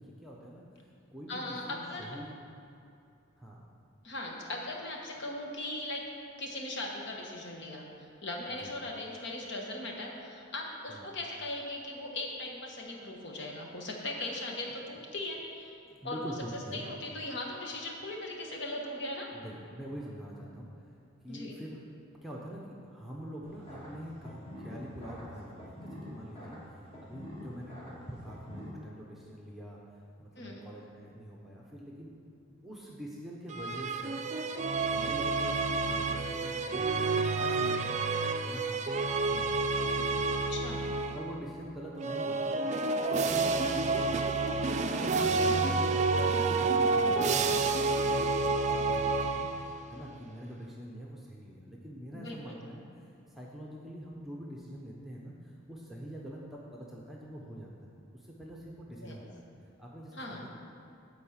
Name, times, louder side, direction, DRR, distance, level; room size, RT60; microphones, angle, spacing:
voice 1, 0.0-2.3 3.4-3.6 7.8-8.1 8.6-8.7 10.9-11.1 15.8-16.9 19.3-21.0 21.2-21.8 22.2-26.6 27.0-29.8 30.2-32.1 32.6-34.2 34.9-38.0 38.4-39.0 39.3-39.5 39.8-40.5 41.1-42.6 43.0-44.5 44.8-49.5 49.9-59.5 59.8-60.5, equal, ahead, -3 dB, 0.8 m, -45 dB
voice 2, 1.3-2.1 4.0-6.0 6.4-7.9 8.2-15.8 16.0-16.2 16.7-19.3 21.3-21.5 30.4-30.6 40.5-40.9 45.1-45.4 52.1-52.6 59.0-59.2 60.1-60.5, left 2 dB, 60° left, 0 dB, 1.3 m, -39 dB
sound 1, 23.4-28.7, left 1 dB, 30° left, 1.9 m, -47 dB
sound 2, 33.5-41.4 42.0-49.9, right 3 dB, 35° right, 0.4 m, -29 dB
10.5 x 4.0 x 7.2 m, 2.6 s
head